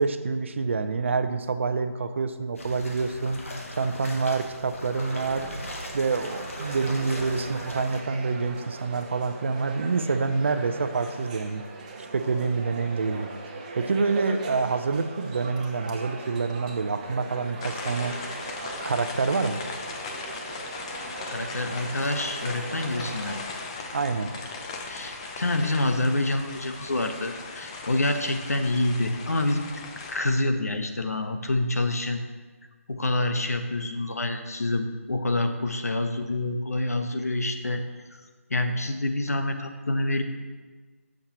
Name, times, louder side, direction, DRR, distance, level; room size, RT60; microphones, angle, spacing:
voice 1, 0.0-3.4 3.7-5.5 5.9-11.6 12.1-13.3 13.7-18.1 18.8-19.6 23.9-24.3, right 4 dB, 50° right, 10 dB, 0.6 m, -27 dB
sound 1, 2.5-8.0, left 1 dB, 60° left, 1.5 m, -39 dB
sound 2, 5.0-23.4, right 3 dB, 30° right, 0.9 m, -40 dB
sound 3, 17.6-30.2, left 3 dB, 20° left, 0.7 m, -38 dB
voice 2, 21.3-23.4 24.8-29.7 30.1-32.2 32.9-37.8 38.5-40.2, left 2 dB, 80° left, 6 dB, 1.0 m, -27 dB
13.5 x 6.5 x 2.9 m, 1.4 s
figure-of-eight pair, 160°, 8 cm